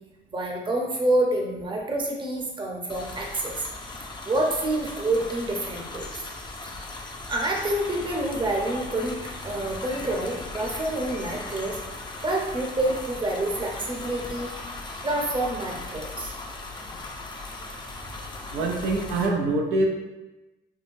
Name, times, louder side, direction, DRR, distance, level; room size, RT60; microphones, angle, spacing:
voice 1, 0.3-3.7 4.2-6.1 7.3-11.8 12.2-14.5 15.0-16.3, right 1 dB, 25° right, -1 dB, 0.7 m, -27 dB
sound 1, 2.9-19.3, left 2 dB, 20° left, 0.5 m, -38 dB
voice 2, 18.5-19.9, right 2 dB, 90° right, 0 dB, 0.5 m, -24 dB
4.6 x 2.1 x 2.6 m, 1.1 s
cardioid pair, 90°, 20 cm